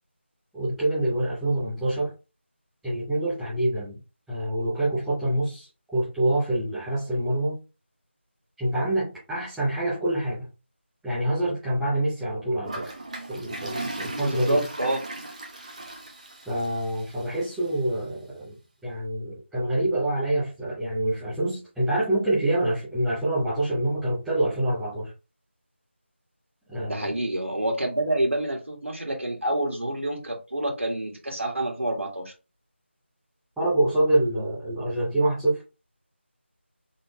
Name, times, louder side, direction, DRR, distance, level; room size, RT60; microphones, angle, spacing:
voice 1, 0.5-2.1 2.8-4.0 4.3-7.6 8.6-10.5 11.0-12.8 13.3-14.6 16.5-18.6 18.8-25.1 26.7-27.1 33.6-35.6, right 1 dB, ahead, 0.6 m, -26 dB
Toilet flush, 12.6-17.7, right 2 dB, 35° right, 0.8 m, -37 dB
voice 2, 14.3-15.0 26.9-32.3, right 1 dB, 85° right, 1.7 m, -27 dB
4.6 x 3.8 x 2.2 m
figure-of-eight pair, 170°, 7 cm